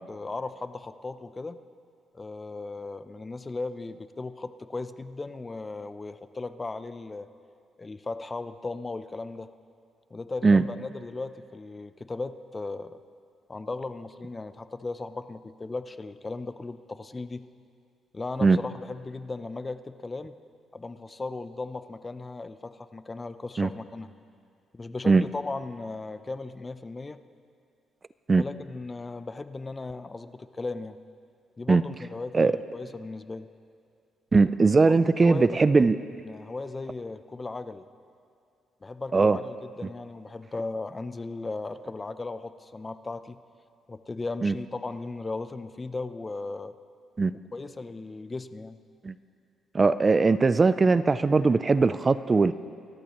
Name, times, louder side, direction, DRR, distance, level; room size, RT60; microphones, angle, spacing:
voice 1, 0.1-1.6 2.1-7.3 7.8-9.5 10.1-13.0 13.5-17.5 18.1-20.4 20.7-24.1 24.7-27.2 28.4-31.0 31.6-33.5 35.2-35.5 35.7-35.8 36.2-37.8 38.8-43.4 43.9-46.7 47.3-48.8, left 3 dB, 25° left, 12 dB, 0.6 m, -36 dB
voice 2, 34.3-36.0 39.1-39.4 44.4-44.5 47.2-47.3 49.0-49.1 49.7-52.5, right 4 dB, 30° right, 14 dB, 0.4 m, -20 dB
26.5 x 13.5 x 3.0 m, 2.4 s
cardioid pair, 90°, 0 cm